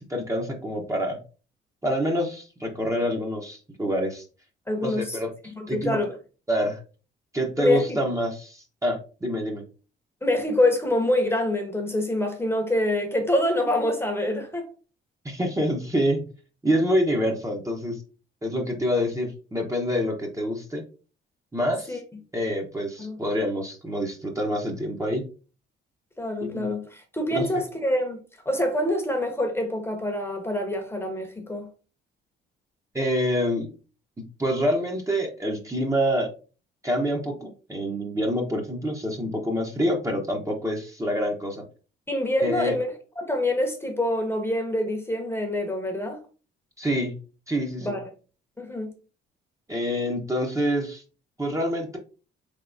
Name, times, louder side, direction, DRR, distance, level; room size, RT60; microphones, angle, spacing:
voice 1, 0.1-1.2 1.8-4.2 4.8-5.3 5.7-6.0 6.5-6.8 7.3-9.6 15.2-16.2 16.6-18.0 18.4-20.8 21.5-22.0 22.3-25.2 26.4-26.7 27.3-27.5 32.9-33.7 34.4-36.3 36.8-41.6 42.4-42.7 46.8-47.1 47.5-47.9 49.7-51.0 51.4-52.0, equal, 15° right, 0.9 m, -26 dB
voice 2, 4.7-5.2 5.6-6.1 7.6-8.0 10.2-14.7 21.9-22.0 23.0-23.2 26.2-28.2 28.4-31.7 42.1-42.9 43.2-46.2 47.8-48.0 48.6-48.9, left 1 dB, 10° left, 1.0 m, -26 dB
3.9 x 3.6 x 2.6 m
cardioid pair, 90°, 20 cm